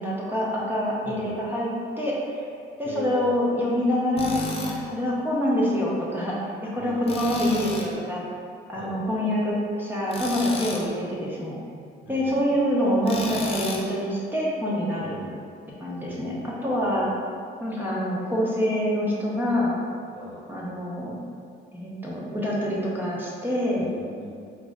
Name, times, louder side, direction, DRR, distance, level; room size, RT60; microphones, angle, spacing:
voice 1, 0.0-1.7 2.0-2.5 2.8-8.2 8.7-11.6 12.1-15.2 15.8-17.1 17.6-19.7 20.5-21.1 21.7-23.9, equal, 10° right, -6 dB, 0.8 m, -26 dB
voice 2, 1.0-1.5 2.8-3.4 6.8-7.3 8.7-9.3 12.0-12.6 15.0-15.4 16.0-17.2 20.1-20.5 23.8-24.3, left 1 dB, 75° left, -6 dB, 1.0 m, -41 dB
Tools, 4.2-4.8 7.1-7.9 10.1-10.9 13.0-13.9, left 3 dB, 30° left, 0.5 m, -33 dB
3.8 x 2.1 x 3.6 m, 2.3 s
cardioid pair, 90°, 20 cm